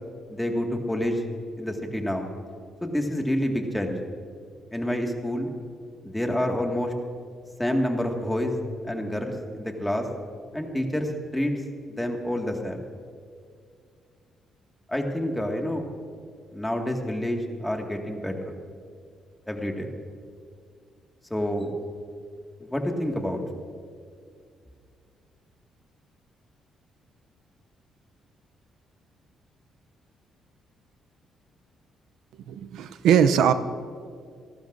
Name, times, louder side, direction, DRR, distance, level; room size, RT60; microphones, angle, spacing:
voice 1, 0.3-1.2 1.6-2.3 2.8-4.0 4.7-5.5 6.0-6.9 7.6-8.6 8.8-10.1 10.5-11.5 11.9-12.8 14.9-15.9 16.5-18.4 19.5-19.9 21.3-21.7 22.6-23.4, left 1 dB, 10° left, 2 dB, 1.9 m, -28 dB
voice 2, 32.5-33.5, right 8 dB, 85° right, 11 dB, 0.5 m, -20 dB
30.0 x 12.0 x 2.6 m, 2.2 s
cardioid pair, 90°, 0 cm